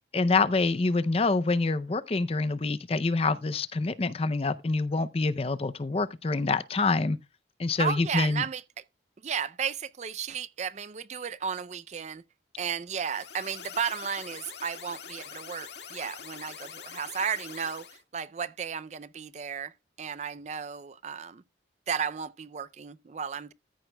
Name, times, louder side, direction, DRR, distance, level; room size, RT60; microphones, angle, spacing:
voice 1, 0.1-7.2 7.6-8.4, left 3 dB, 30° left, 0.5 m, -26 dB
voice 2, 7.8-8.6 9.2-12.2 12.6-17.9 18.1-19.7 20.0-21.4 21.9-23.5, right 7 dB, 35° right, 0.4 m, -34 dB
sound 1, 12.9-18.0, left 7 dB, 65° left, 1.8 m, -44 dB
14.0 x 10.5 x 2.2 m
head